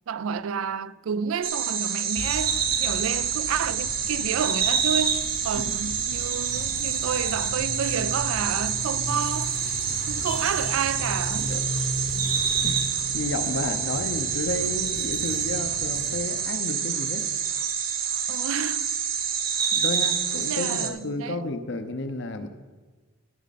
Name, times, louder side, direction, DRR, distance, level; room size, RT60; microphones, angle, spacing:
voice 1, 0.1-9.8 10.1-11.6 18.3-18.9 20.5-21.5, right 7 dB, 75° right, 0.3 m, -30 dB
sound 1, 1.4-20.9, right 7 dB, 45° right, 0.8 m, -27 dB
sound 2, 2.2-16.3, left 1 dB, 25° left, 0.7 m, -37 dB
voice 2, 13.1-17.2 19.7-22.5, left 2 dB, 60° left, 0.8 m, -32 dB
14.0 x 7.3 x 4.2 m
head